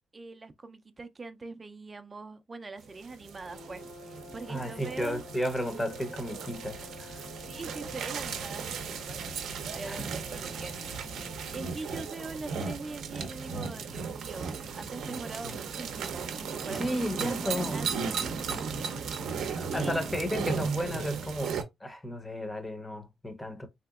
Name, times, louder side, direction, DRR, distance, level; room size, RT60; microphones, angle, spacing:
voice 1, 0.1-5.2 7.4-9.2 9.7-10.8 11.5-18.2 19.5-20.1, right 3 dB, 25° right, 0.4 m, -42 dB
sound 1, 2.8-21.6, right 5 dB, 75° right, 0.6 m, -36 dB
sound 2, 3.5-12.4, left 4 dB, 60° left, 0.8 m, -50 dB
voice 2, 4.5-7.2 9.9-10.1 16.7-17.9 19.6-23.7, equal, 10° left, 0.7 m, -33 dB
3.3 x 2.8 x 2.3 m
cardioid pair, 90°, 0 cm